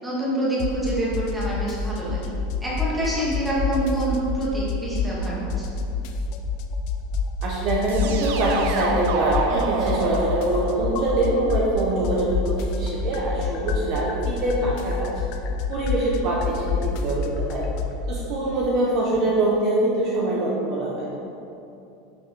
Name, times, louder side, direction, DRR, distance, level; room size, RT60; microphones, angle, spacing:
voice 1, 0.0-2.2 2.6-5.6, right 1 dB, 5° right, -8 dB, 2.2 m, -26 dB
sound 1, 0.6-0.9 1.1-3.1 3.3-5.3 5.5-7.4 7.7-11.8 12.0-18.0, left 5 dB, 45° left, 0.7 m, -27 dB
voice 2, 7.4-15.2 15.7-17.7 18.1-21.1, right 1 dB, 35° right, -4 dB, 1.2 m, -24 dB
sound 2, 7.9-12.8, right 4 dB, 70° right, 0.9 m, -30 dB
11.0 x 6.2 x 4.7 m, 2.7 s
supercardioid pair, 180°, 0 cm